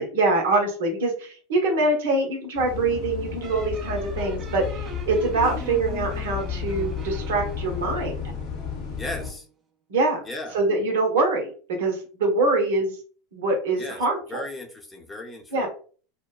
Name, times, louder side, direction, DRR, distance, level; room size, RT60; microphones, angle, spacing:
voice 1, 0.0-8.1 9.9-10.2 10.5-11.5 11.8-12.9 13.3-14.4 15.5-15.7, right 2 dB, 70° right, 2 dB, 0.8 m, -24 dB
Bus, 2.6-9.3, left 8 dB, 55° left, 0.7 m, -33 dB
sound 1, 3.4-9.4, right 3 dB, 30° right, 0.7 m, -41 dB
voice 2, 9.0-9.5 10.2-10.6 13.8-14.0 14.3-15.7, left 1 dB, 15° left, 1 dB, 0.7 m, -36 dB
2.7 x 2.1 x 2.3 m, 0.41 s
hypercardioid pair, 85°, 0 cm